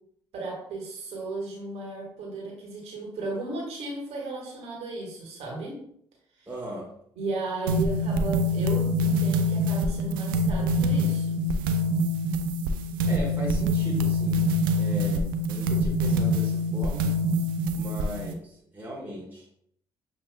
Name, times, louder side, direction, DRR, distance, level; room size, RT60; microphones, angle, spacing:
voice 1, 0.3-5.8 7.2-11.4, right 2 dB, 65° right, -2 dB, 1.4 m, -35 dB
voice 2, 6.5-6.9 13.1-14.5 14.8-17.1 17.7-19.5, equal, 15° right, -3 dB, 1.2 m, -38 dB
sound 1, 7.7-18.3, equal, 85° right, 0.4 m, -25 dB
6.7 x 2.8 x 2.2 m, 0.70 s
hypercardioid pair, 45°, 11 cm